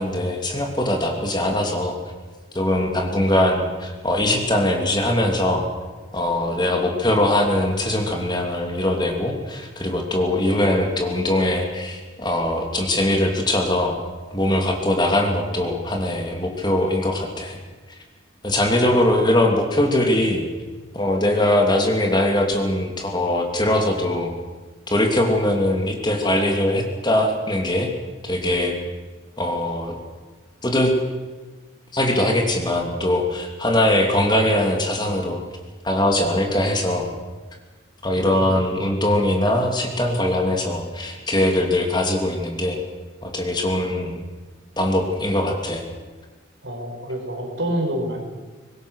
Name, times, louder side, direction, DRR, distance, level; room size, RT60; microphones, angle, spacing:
voice 1, 0.0-2.0 2.5-5.7 6.1-14.0 14.3-17.6 18.4-20.5 20.9-24.3 24.9-27.9 28.2-28.8 29.4-30.0 30.6-30.9 31.9-35.4 35.8-37.1 38.0-42.8 43.2-44.2 44.8-45.8, left 1 dB, 20° left, 2 dB, 2.7 m, -21 dB
voice 2, 18.5-19.2 38.1-38.7 46.6-48.2, right 1 dB, 65° right, 2 dB, 5.1 m, -29 dB
24.0 x 20.5 x 6.4 m, 1.3 s
head